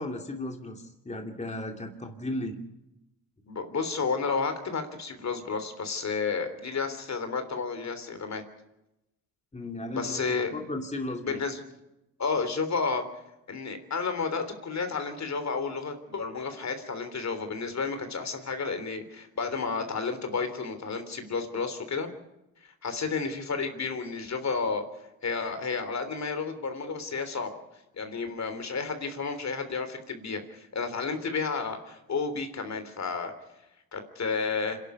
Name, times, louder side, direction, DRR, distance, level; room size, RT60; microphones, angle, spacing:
voice 1, 0.0-2.6 9.5-11.4, left 1 dB, 20° left, 3 dB, 2.7 m, -35 dB
voice 2, 3.5-8.4 9.9-10.5 11.2-11.6 12.2-13.1 13.5-22.1 22.8-24.8 25.2-27.5 28.0-33.3 33.9-34.8, left 4 dB, 45° left, 8 dB, 3.5 m, -31 dB
26.0 x 11.5 x 9.6 m, 0.91 s
supercardioid pair, 70°, 37 cm